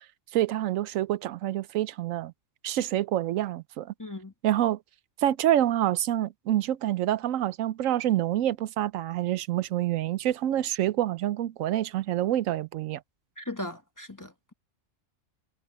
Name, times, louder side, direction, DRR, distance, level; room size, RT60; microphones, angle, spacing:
voice 1, 0.3-2.3 2.6-3.9 4.4-4.8 5.2-13.0, right 12 dB, 85° right, 1.0 m, -27 dB
voice 2, 4.0-4.3 13.4-14.5, left 1 dB, 15° left, 1.3 m, -38 dB
omnidirectional pair, 1.4 m